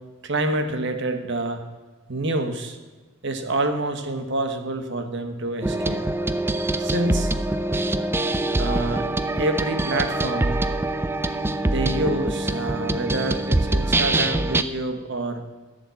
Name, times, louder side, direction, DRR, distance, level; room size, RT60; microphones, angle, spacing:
voice 1, 0.2-1.6 2.1-2.8 3.2-6.0 6.8-7.3 8.6-9.0 9.4-10.6 11.6-15.4, right 2 dB, 55° right, 7 dB, 1.3 m, -27 dB
sound 1, 5.6-14.6, right 2 dB, 10° right, 0.3 m, -24 dB
14.5 x 7.1 x 7.0 m, 1.3 s
head